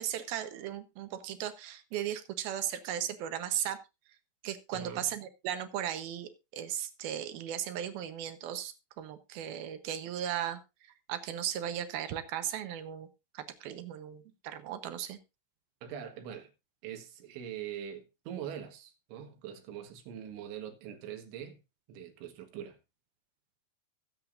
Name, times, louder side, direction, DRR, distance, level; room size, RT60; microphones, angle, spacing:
voice 1, 0.0-3.8 4.4-10.6 11.1-13.1 13.3-15.2, right 10 dB, 70° right, 2.5 m, -36 dB
voice 2, 4.7-5.1 15.8-16.5 16.8-21.6 21.9-22.8, right 9 dB, 85° right, 4.1 m, -43 dB
22.0 x 7.7 x 2.6 m
omnidirectional pair, 5.3 m